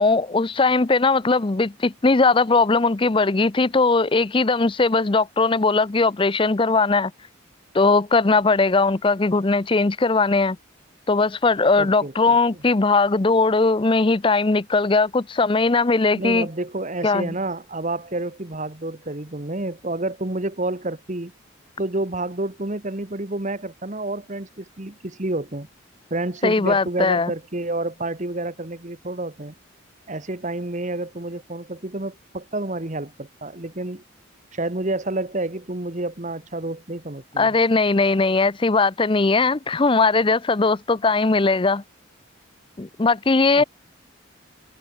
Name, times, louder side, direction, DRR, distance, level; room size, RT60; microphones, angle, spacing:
voice 1, 0.0-7.1 7.7-10.6 11.1-16.5 17.0-17.3 26.4-27.3 37.4-41.8 42.8-43.6, left 3 dB, 25° left, 0.5 m, -19 dB
voice 2, 11.8-12.4 16.1-21.3 21.8-25.7 26.1-29.5 30.1-34.0 34.5-37.6 43.5-43.6, right 2 dB, 35° right, 1.4 m, -29 dB
head